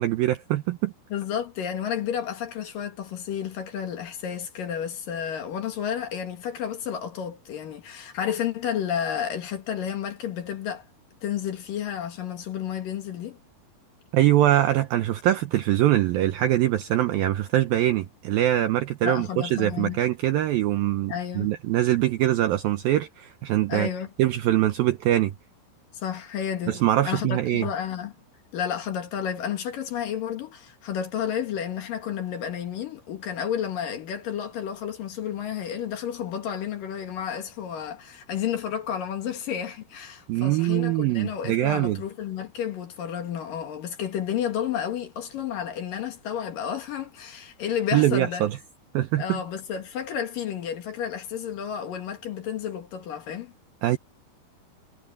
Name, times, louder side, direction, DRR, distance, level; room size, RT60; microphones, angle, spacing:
voice 1, 0.0-0.9 14.1-23.9 24.2-25.3 26.7-27.7 40.3-42.0 47.9-48.6 48.9-49.4 53.8-54.0, right 14 dB, 80° right, 2.1 m, -23 dB
voice 2, 1.1-10.8 11.2-13.4 19.0-20.0 21.1-21.5 23.7-24.1 25.9-26.8 27.0-28.1 28.5-48.5 49.2-53.5, left 9 dB, 60° left, 3.0 m, -31 dB
omnidirectional pair, 5.1 m